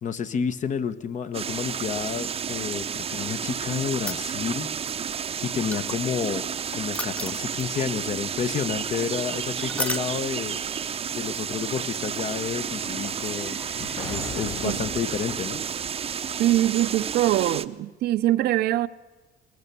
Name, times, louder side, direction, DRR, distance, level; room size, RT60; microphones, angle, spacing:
voice 1, 0.0-4.7 5.0-5.2 5.4-6.5 6.7-10.6 11.1-15.6, left 7 dB, 45° left, 1.1 m, -30 dB
sound 1, 1.3-17.7, right 7 dB, 35° right, 0.7 m, -31 dB
sound 2, 4.1-4.6 5.7-6.3 6.9-7.9 9.7-10.1 12.4-12.5, left 1 dB, 5° left, 0.7 m, -33 dB
sound 3, 10.3-16.7 17.0-17.1, left 3 dB, 75° left, 6.4 m, -43 dB
voice 2, 16.4-18.9, right 14 dB, 75° right, 0.7 m, -23 dB
20.5 x 20.0 x 6.9 m
cardioid pair, 110°, 17 cm